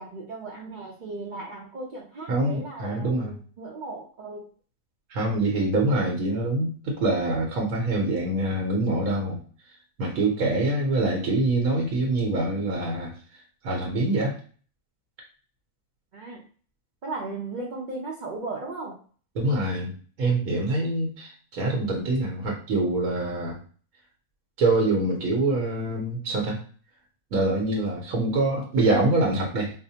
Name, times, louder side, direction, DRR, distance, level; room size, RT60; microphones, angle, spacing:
voice 1, 0.0-4.4 16.1-16.4 17.0-19.0 20.8-20.9, right 3 dB, 45° right, -3 dB, 0.6 m, -36 dB
voice 2, 2.3-3.3 5.1-9.4 10.0-13.1 13.6-14.3 19.3-23.6 24.6-26.6 27.3-29.7, right 2 dB, 80° right, -2 dB, 1.3 m, -25 dB
4.7 x 2.1 x 2.7 m, 0.41 s
omnidirectional pair, 1.5 m